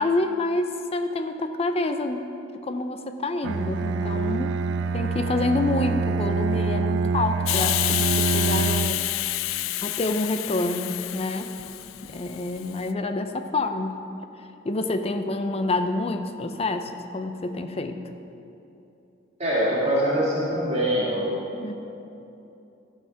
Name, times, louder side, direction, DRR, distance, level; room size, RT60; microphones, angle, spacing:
voice 1, 0.0-2.2 2.6-4.5 4.9-9.1 9.8-11.5 12.0-14.0 14.6-18.0 21.6-21.7, left 2 dB, 30° left, 7 dB, 0.5 m, -27 dB
Bowed string instrument, 3.4-9.1, right 4 dB, 65° right, 0.4 m, -26 dB
Hiss, 7.5-12.8, left 16 dB, 85° left, 0.3 m, -28 dB
voice 2, 19.4-21.4, equal, 35° right, -8 dB, 2.1 m, -23 dB
13.5 x 5.7 x 5.7 m, 2.9 s
head